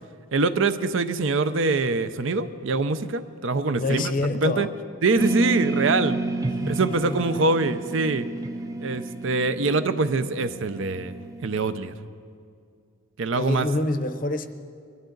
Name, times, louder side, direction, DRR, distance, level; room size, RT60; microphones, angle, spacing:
voice 1, 0.3-4.0 4.4-4.7 5.0-6.2 6.7-8.3 8.8-11.2 11.4-11.9 13.2-13.7, right 3 dB, 65° right, 12 dB, 0.6 m, -24 dB
voice 2, 3.7-4.7 6.6-7.4 13.4-14.5, left 2 dB, 40° left, 9 dB, 0.6 m, -27 dB
sound 1, 5.2-11.9, right 2 dB, 15° right, 0.4 m, -30 dB
21.5 x 12.5 x 3.9 m, 2.3 s
head